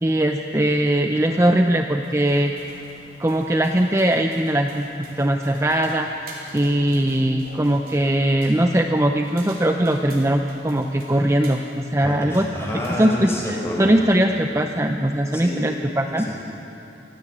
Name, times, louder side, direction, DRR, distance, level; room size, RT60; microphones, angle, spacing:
voice 1, 0.0-2.5 3.2-6.1 6.5-12.5 13.0-16.3, right 1 dB, 15° right, 4 dB, 0.7 m, -20 dB
sound 1, 1.9-13.6, right 2 dB, 55° right, 4.2 m, -46 dB
voice 2, 12.0-14.0 15.3-15.6 16.2-16.4, equal, 15° left, -2 dB, 5.0 m, -29 dB
25.0 x 16.5 x 8.7 m, 2.9 s
head